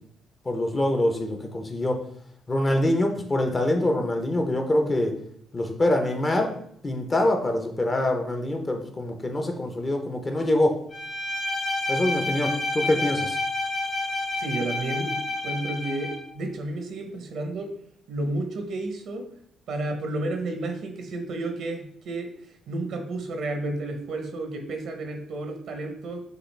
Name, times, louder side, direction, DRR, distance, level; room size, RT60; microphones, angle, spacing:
voice 1, 0.5-2.0 2.5-5.1 5.5-6.6 6.8-10.8 11.9-13.4, left 1 dB, 30° left, 4 dB, 0.7 m, -24 dB
Bowed string instrument, 10.9-16.3, left 2 dB, 65° left, 1.6 m, -29 dB
voice 2, 14.3-17.7 18.1-19.3 19.7-22.3 22.7-26.2, right 2 dB, 75° right, 5 dB, 0.8 m, -31 dB
6.4 x 2.4 x 3.3 m, 0.67 s
cardioid pair, 90°, 0 cm